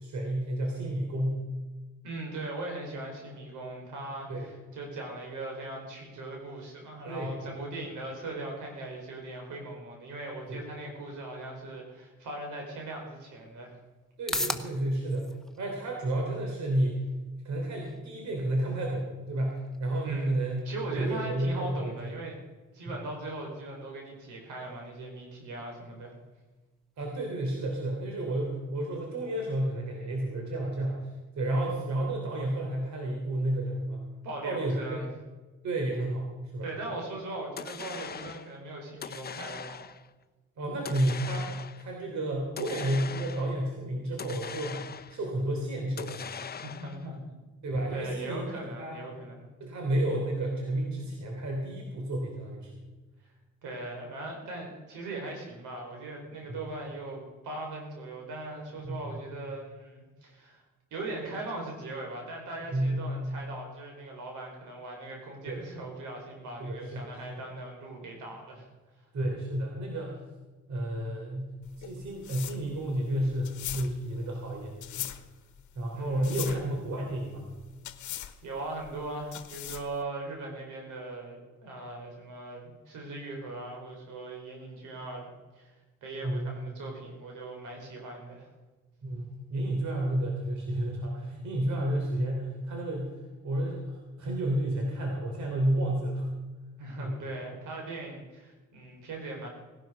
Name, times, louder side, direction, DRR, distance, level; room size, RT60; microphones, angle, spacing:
voice 1, 0.0-1.5 4.3-4.5 7.1-7.4 10.5-10.7 14.2-15.3 15.6-17.1 17.4-22.1 27.0-34.0 34.4-35.0 35.6-36.3 36.5-36.7 40.6-46.2 47.6-49.0 49.6-52.9 56.5-56.6 58.8-59.2 62.7-63.0 65.5-65.6 66.6-67.2 69.1-70.2 70.7-75.1 75.8-77.5 86.2-86.6 89.0-96.3 97.0-97.2, right 1 dB, 65° right, 1 dB, 3.5 m, -31 dB
voice 2, 2.0-13.8 20.0-22.4 22.7-26.1 34.2-35.1 36.6-39.9 46.6-47.4 47.9-49.5 53.6-60.6 60.9-68.7 75.9-76.7 78.0-78.2 78.4-85.3 85.5-85.7 86.0-88.5 96.8-99.5, right 2 dB, 90° right, 1 dB, 5.0 m, -39 dB
sound 1, 12.8-29.8, left 1 dB, ahead, 1.2 m, -45 dB
sound 2, 37.6-38.5 39.0-40.1 40.8-41.9 42.6-43.6 44.2-45.3 46.0-47.1, left 7 dB, 30° left, 0.7 m, -41 dB
sound 3, 71.6-80.0, left 12 dB, 75° left, 1.1 m, -41 dB
18.5 x 12.0 x 5.3 m, 1.2 s
cardioid pair, 90°, 30 cm